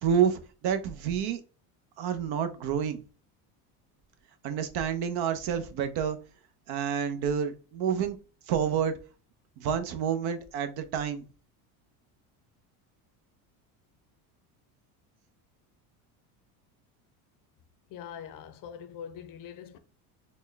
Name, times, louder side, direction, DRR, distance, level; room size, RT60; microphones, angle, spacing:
voice 1, 0.0-1.4 2.0-3.0 4.4-6.2 6.7-8.2 8.5-8.9 9.6-11.2, right 8 dB, 60° right, 0.8 m, -28 dB
voice 2, 17.9-19.8, left 8 dB, 50° left, 0.6 m, -43 dB
4.2 x 2.2 x 3.3 m
supercardioid pair, 110°, 43 cm